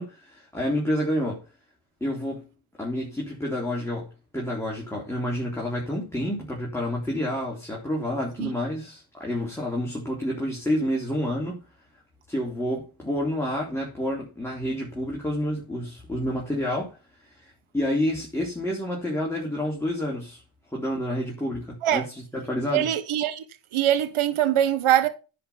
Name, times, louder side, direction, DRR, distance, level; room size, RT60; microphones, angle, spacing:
voice 1, 0.0-1.5 2.0-2.5 2.8-4.1 4.3-11.6 12.3-20.4 20.7-22.1 22.3-22.9, left 1 dB, 5° left, 3.7 m, -29 dB
voice 2, 22.7-23.4 23.7-25.1, right 11 dB, 75° right, 1.3 m, -22 dB
10.0 x 5.3 x 5.7 m
cardioid pair, 70°, 50 cm